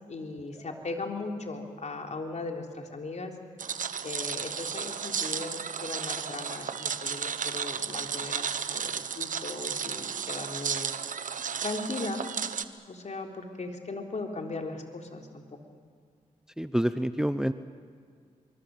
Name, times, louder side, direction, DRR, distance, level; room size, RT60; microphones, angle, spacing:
voice 1, 0.1-3.3 4.0-10.9 11.6-12.2 12.9-15.4, left 3 dB, 55° left, 3 dB, 3.8 m, -38 dB
sound 1, 3.6-12.6, right 7 dB, 65° right, 1.2 m, -33 dB
voice 2, 16.6-17.5, equal, 5° right, 12 dB, 1.0 m, -28 dB
24.5 x 24.0 x 7.9 m, 2.1 s
supercardioid pair, 50°, 15 cm